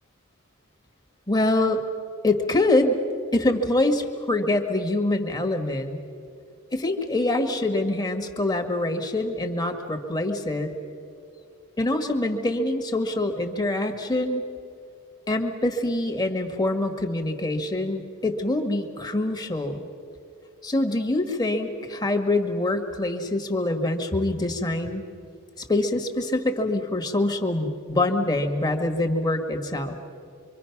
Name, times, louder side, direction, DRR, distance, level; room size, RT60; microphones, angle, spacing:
voice 1, 1.3-1.8 2.2-2.9 3.3-6.0 6.7-10.7 11.8-14.4 15.3-19.8 20.6-25.1 25.6-30.0, left 2 dB, 20° left, 4 dB, 1.7 m, -25 dB
26.0 x 24.0 x 6.0 m, 2.4 s
head